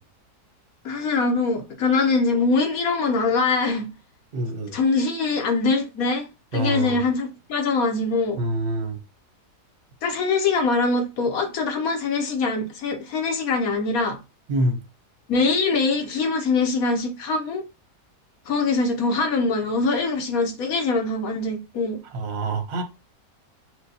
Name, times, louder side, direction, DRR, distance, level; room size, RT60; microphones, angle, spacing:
voice 1, 0.8-3.9 4.7-6.3 6.5-8.4 10.0-14.2 15.3-17.6 18.5-22.0, left 3 dB, 65° left, 1.2 m, -23 dB
voice 2, 4.3-4.8 6.5-7.0 8.4-9.0 14.5-14.8 22.1-22.8, right 2 dB, 45° right, 0.8 m, -26 dB
6.3 x 2.2 x 2.7 m
omnidirectional pair, 1.8 m